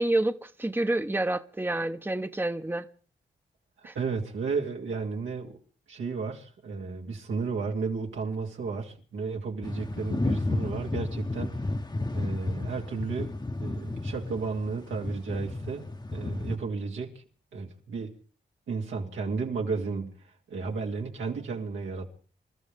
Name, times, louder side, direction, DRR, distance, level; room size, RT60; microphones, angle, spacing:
voice 1, 0.0-2.8 3.8-3.9, right 1 dB, 10° right, 1.0 m, -28 dB
voice 2, 3.9-5.6 5.9-11.6 12.1-17.1 17.5-18.1 18.7-20.1 20.5-22.1, right 4 dB, 85° right, 2.8 m, -33 dB
sound 1, 9.6-16.6, left 2 dB, 20° left, 1.1 m, -32 dB
27.5 x 13.5 x 3.6 m
supercardioid pair, 45°, 20 cm